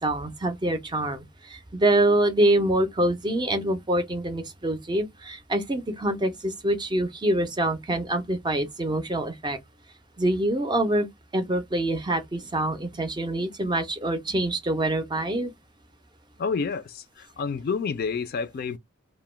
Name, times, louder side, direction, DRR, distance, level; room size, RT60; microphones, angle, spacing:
voice 1, 0.0-9.6 10.2-11.1 11.3-15.5, right 1 dB, 20° right, 0.5 m, -25 dB
voice 2, 16.4-18.8, left 5 dB, 50° left, 0.3 m, -29 dB
2.2 x 2.1 x 3.1 m
head